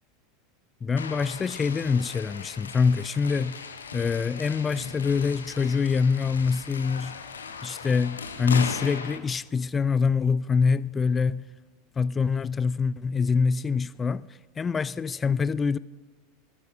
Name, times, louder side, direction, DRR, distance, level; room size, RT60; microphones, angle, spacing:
voice 1, 0.8-3.6 3.9-7.1 7.6-11.5 12.0-14.3 14.6-15.8, left 5 dB, 20° left, 0.3 m, -25 dB
sound 1, 1.0-9.2, left 5 dB, 75° left, 0.8 m, -38 dB
18.5 x 11.5 x 2.7 m
figure-of-eight pair, 85°, 0 cm